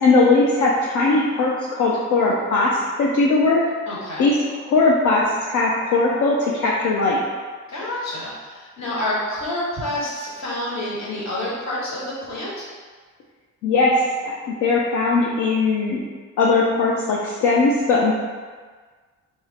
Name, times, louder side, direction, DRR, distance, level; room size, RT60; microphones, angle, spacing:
voice 1, 0.0-3.6 4.2-4.4 4.7-7.2 13.6-14.0 14.2-16.0 16.4-18.1, left 3 dB, 80° left, -4 dB, 0.6 m, -19 dB
voice 2, 3.9-4.3 7.7-12.7, left 1 dB, 65° left, -6 dB, 1.4 m, -28 dB
3.6 x 3.1 x 2.8 m, 1.5 s
cardioid pair, 90°, 30 cm